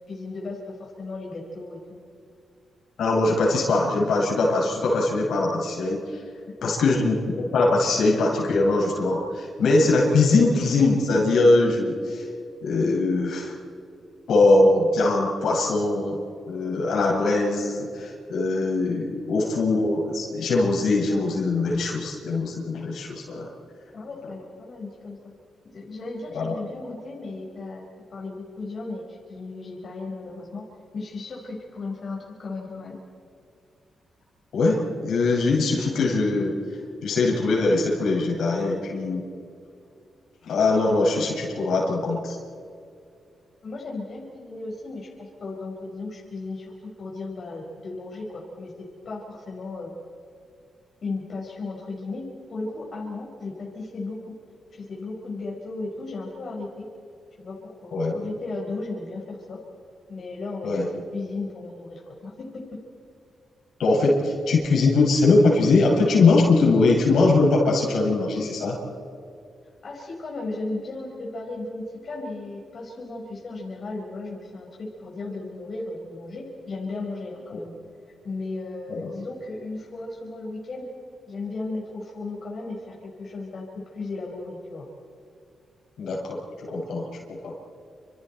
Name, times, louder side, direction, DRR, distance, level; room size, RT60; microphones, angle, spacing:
voice 1, 0.1-2.0 23.9-25.3 25.6-27.8 28.1-30.6 30.9-33.0 43.6-46.7 47.0-48.7 49.0-49.9 51.0-54.3 54.7-56.9 57.4-59.6 60.1-62.6 69.8-77.7 78.2-80.9 81.3-83.6 83.9-84.9, left 3 dB, 55° left, -3 dB, 5.0 m, -35 dB
voice 2, 3.0-6.0 6.6-12.2 12.6-13.5 14.3-16.2 16.4-23.5 26.3-26.5 34.5-36.5 37.0-39.2 40.4-42.4 57.9-58.2 60.6-60.9 63.8-68.8 78.9-79.1 86.0-87.5, left 3 dB, 80° left, -2 dB, 6.6 m, -21 dB
29.0 x 27.0 x 4.6 m, 2.5 s
cardioid pair, 75°, 0 cm